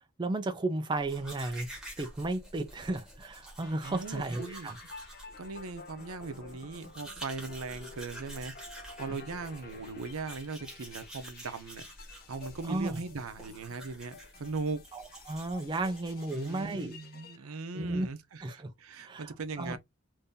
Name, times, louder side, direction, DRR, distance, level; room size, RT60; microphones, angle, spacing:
voice 1, 0.2-1.7 2.0-4.8 12.7-13.0 14.9-17.0 17.4-18.1 18.4-18.7 19.0-19.8, right 2 dB, 20° right, 0.3 m, -34 dB
Domestic sounds home sounds, 1.0-17.0, right 1 dB, 5° right, 1.1 m, -49 dB
sound 1, 3.6-17.4, left 5 dB, 45° left, 0.6 m, -52 dB
voice 2, 3.8-4.7 5.4-8.5 9.0-11.9 12.3-14.8 16.3-19.8, right 4 dB, 85° right, 0.6 m, -39 dB
2.7 x 2.7 x 3.5 m
head